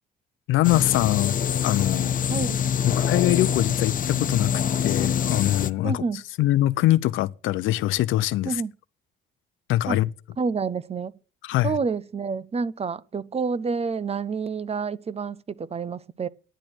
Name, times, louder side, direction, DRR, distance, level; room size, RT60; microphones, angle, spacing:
voice 1, 0.5-2.1 2.8-4.5 4.8-6.0 6.4-8.6 9.7-10.1 11.4-11.7, left 15 dB, 85° left, 0.6 m, -23 dB
sound 1, 0.6-5.7, left 8 dB, 45° left, 0.6 m, -25 dB
voice 2, 5.8-6.2 8.4-8.7 9.8-10.0 10.4-11.2 11.6-16.3, right 5 dB, 30° right, 0.6 m, -28 dB
10.5 x 10.0 x 6.1 m
cardioid pair, 90°, 20 cm